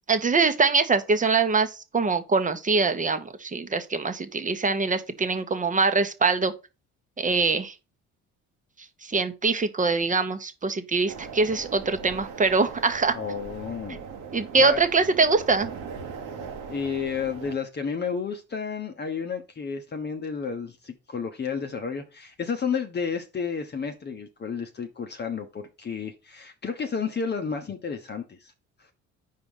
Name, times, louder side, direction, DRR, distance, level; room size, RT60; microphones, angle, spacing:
voice 1, 0.1-6.5 7.2-7.7 9.0-13.1 14.3-15.7, right 4 dB, 25° right, 1.0 m, -23 dB
sound 1, 11.1-17.5, right 6 dB, 70° right, 1.2 m, -39 dB
voice 2, 13.1-14.0 14.6-14.8 16.7-28.5, left 6 dB, 30° left, 0.9 m, -31 dB
4.8 x 4.1 x 5.4 m
supercardioid pair, 70°, 33 cm